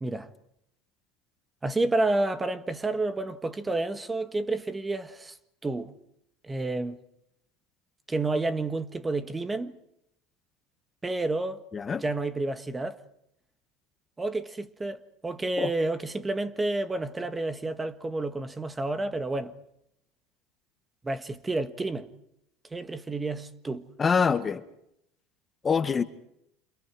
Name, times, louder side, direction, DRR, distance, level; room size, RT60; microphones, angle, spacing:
voice 1, 1.6-5.4 5.6-5.9 6.4-7.0 8.1-9.7 11.0-11.6 11.9-13.0 14.2-19.5 21.0-22.1 22.7-23.8, right 2 dB, 15° right, 1.5 m, -30 dB
voice 2, 24.0-24.6 25.6-26.0, left 6 dB, 25° left, 1.5 m, -24 dB
28.5 x 27.5 x 4.8 m
supercardioid pair, 105°, 0 cm